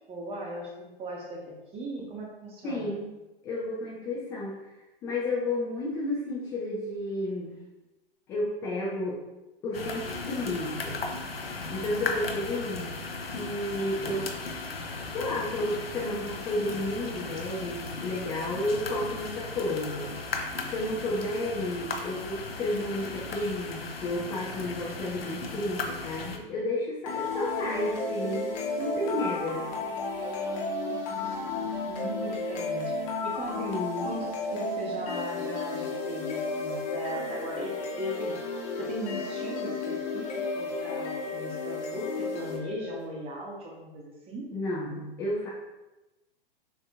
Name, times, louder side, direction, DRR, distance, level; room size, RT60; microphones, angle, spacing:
voice 1, 0.1-3.0 11.9-12.1 30.9-32.9 33.2-37.7 38.0-38.4 38.8-40.3 40.5-44.5, equal, 20° right, -2 dB, 1.0 m, -38 dB
voice 2, 2.6-3.1 3.4-4.7 5.0-7.5 8.3-9.2 9.6-11.0 11.7-13.0 13.3-14.3 15.1-20.1 20.7-29.6 33.6-34.1 44.5-45.5, left 1 dB, 10° left, -5 dB, 0.3 m, -32 dB
sound 1, 9.7-26.4, left 3 dB, 75° left, 0.7 m, -36 dB
sound 2, 27.1-43.0, left 3 dB, 35° left, 0.9 m, -33 dB
6.7 x 2.6 x 2.3 m, 1.0 s
figure-of-eight pair, 105°, 30 cm